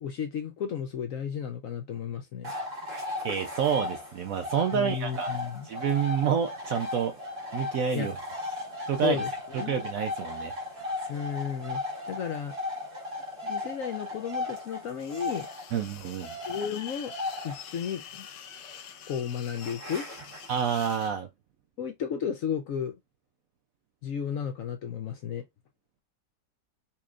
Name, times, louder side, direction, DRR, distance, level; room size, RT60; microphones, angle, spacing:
voice 1, 0.0-2.5 4.7-5.7 7.9-8.1 9.0-9.8 11.1-12.5 13.4-15.5 16.5-17.1 17.4-18.3 19.1-20.1 21.8-23.0 24.0-25.4, left 8 dB, 65° left, 0.8 m, -33 dB
sound 1, 2.4-20.9, left 2 dB, 35° right, 1.9 m, -37 dB
voice 2, 3.2-5.3 5.6-7.2 7.5-8.2 8.9-9.2 9.5-10.5 15.7-16.3 20.5-21.3, right 7 dB, 70° right, 0.8 m, -28 dB
sound 2, 15.0-21.1, left 9 dB, 90° left, 1.3 m, -46 dB
4.3 x 2.9 x 2.4 m
omnidirectional pair, 1.9 m